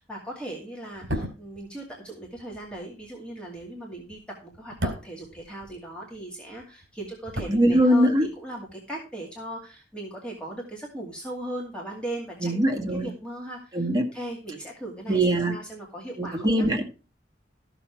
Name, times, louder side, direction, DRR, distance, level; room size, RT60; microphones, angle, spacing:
voice 1, 0.0-16.7, right 1 dB, 5° left, -3 dB, 2.3 m, -38 dB
sound 1, 0.9-6.2 6.5-8.3 8.6-8.7, equal, 70° right, 3.2 m, -36 dB
voice 2, 7.5-8.3 12.4-13.1 13.7-14.0 15.1-15.5 16.2-16.8, right 1 dB, 20° right, 0 dB, 1.9 m, -22 dB
14.0 x 7.0 x 4.6 m, 0.34 s
head